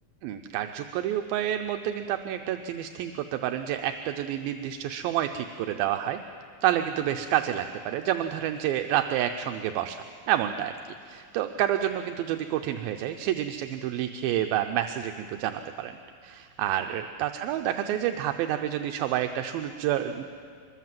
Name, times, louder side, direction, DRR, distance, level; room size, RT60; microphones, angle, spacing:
voice 1, 0.2-6.2 6.6-10.7 11.1-15.9 16.2-20.2, right 11 dB, 80° right, 6 dB, 2.5 m, -29 dB
24.5 x 22.0 x 7.6 m, 2.3 s
omnidirectional pair, 4.3 m